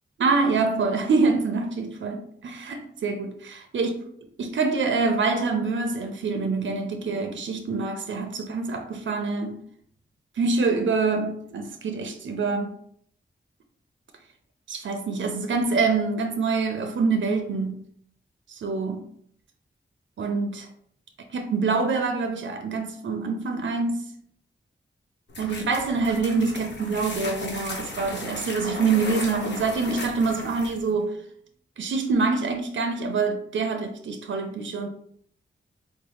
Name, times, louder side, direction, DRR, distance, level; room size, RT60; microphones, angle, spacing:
voice 1, 0.2-4.0 4.4-9.6 10.4-12.8 14.7-17.8 18.5-19.0 20.2-20.7 21.3-24.0 25.4-31.2 31.8-34.9, right 4 dB, 75° right, 0.5 m, -25 dB
sound 1, 25.3-30.9, left 2 dB, 65° left, 0.9 m, -36 dB
4.0 x 2.0 x 3.3 m
wide cardioid pair, 70°, 20 cm